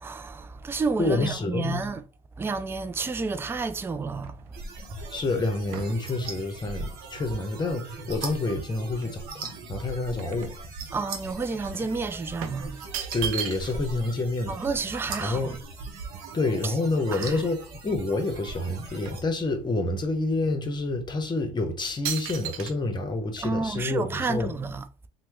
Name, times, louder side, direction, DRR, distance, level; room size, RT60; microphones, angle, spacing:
voice 1, 0.0-2.1 2.4-4.6 5.0-5.1 10.9-12.8 14.5-15.5 16.6-16.8 17.1-17.5 23.4-24.9, right 4 dB, 15° right, 0.3 m, -30 dB
voice 2, 1.0-1.9 5.1-10.6 13.1-14.6 15.2-15.6 16.3-24.5, left 2 dB, 25° left, 0.9 m, -28 dB
sound 1, 3.9-8.6 9.0-11.2 11.5-11.7 12.4-14.0 14.3-14.4 14.6-16.7 17.3-17.4 17.6-18.4 18.7-19.9 20.5-20.6 21.3-21.5 22.0-22.7, right 8 dB, 85° right, 0.5 m, -38 dB
sound 2, 4.5-19.2, right 4 dB, 60° right, 1.0 m, -40 dB
2.9 x 2.2 x 3.5 m
supercardioid pair, 85°, 18 cm